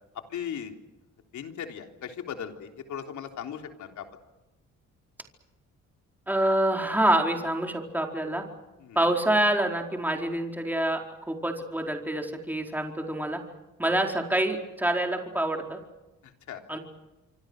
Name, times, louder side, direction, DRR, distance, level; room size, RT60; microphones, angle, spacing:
voice 1, 0.1-0.7 1.3-4.1 8.8-9.1 13.8-14.0 16.2-16.8, left 8 dB, 75° left, 4 dB, 3.6 m, -38 dB
voice 2, 6.3-8.4 8.9-11.0 11.3-13.4 13.8-15.8 16.7-16.8, right 1 dB, 5° right, 2 dB, 4.5 m, -26 dB
26.5 x 25.5 x 6.6 m, 1.1 s
cardioid pair, 85°, 30 cm